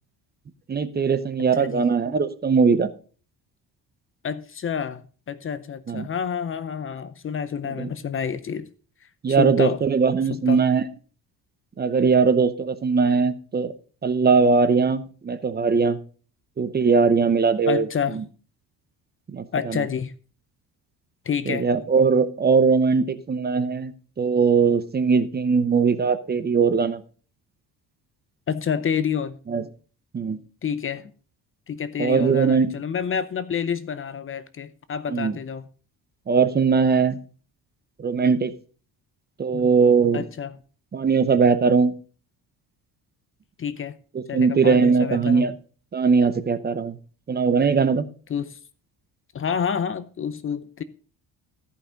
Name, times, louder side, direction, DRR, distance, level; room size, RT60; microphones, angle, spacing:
voice 1, 0.7-2.9 5.9-6.1 7.8-7.9 9.2-10.8 11.8-13.7 14.0-16.0 16.6-17.9 19.3-19.4 21.5-23.9 24.2-27.0 29.5-29.6 30.1-30.4 32.0-32.7 35.1-35.3 36.3-37.2 38.0-38.5 39.4-40.2 40.9-41.9 44.1-45.5 45.9-46.9 47.3-48.0, right 5 dB, 25° right, 0.7 m, -20 dB
voice 2, 1.5-1.8 4.2-8.7 9.3-9.8 10.3-10.6 17.7-18.2 19.5-20.1 21.2-21.7 28.5-29.4 30.6-31.1 31.7-35.7 39.5-39.7 40.1-40.6 43.6-44.0 44.3-45.5 48.3-48.6 49.3-50.8, left 7 dB, 35° left, 0.6 m, -28 dB
14.0 x 5.6 x 5.1 m
cardioid pair, 135°, 39 cm